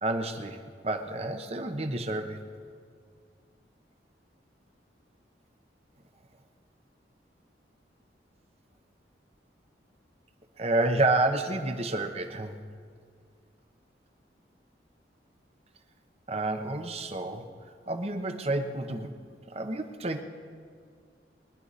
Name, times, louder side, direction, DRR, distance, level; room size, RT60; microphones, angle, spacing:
voice 1, 0.0-2.4 10.6-12.6 16.3-17.5 17.9-19.1 19.5-20.2, right 2 dB, 35° right, 7 dB, 1.0 m, -29 dB
22.5 x 11.0 x 4.1 m, 2.2 s
head